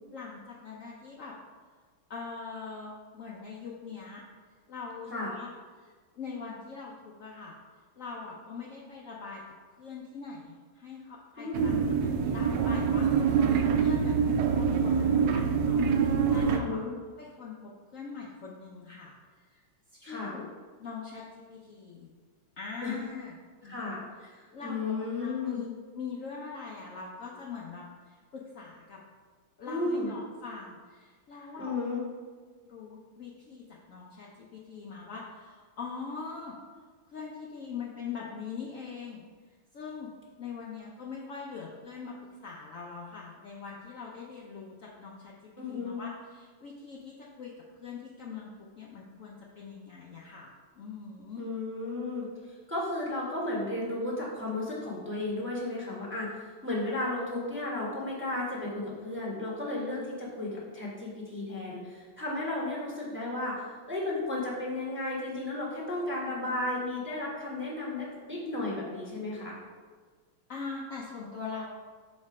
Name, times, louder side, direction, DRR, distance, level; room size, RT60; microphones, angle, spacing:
voice 1, 0.1-1.3 2.1-4.2 4.7-5.5 5.8-7.6 8.0-9.4 9.8-16.8 17.2-19.6 19.9-20.5 20.8-22.1 22.6-23.3 23.6-23.8 24.2-25.7 26.0-29.0 29.6-31.8 32.6-36.6 37.1-39.2 39.7-40.1 40.4-42.2 42.4-45.3 45.7-51.4 70.5-71.7, left 5 dB, 80° left, -4 dB, 0.7 m, -42 dB
voice 2, 11.4-11.8 16.4-16.9 20.0-20.3 22.8-23.0 23.6-24.0 24.6-25.6 29.6-30.1 31.6-32.0 45.6-46.0 51.4-69.6, left 2 dB, 10° right, -5 dB, 0.9 m, -34 dB
sound 1, 11.5-16.6, right 6 dB, 75° right, 1.0 m, -25 dB
6.1 x 4.4 x 4.7 m, 1.5 s
omnidirectional pair, 2.3 m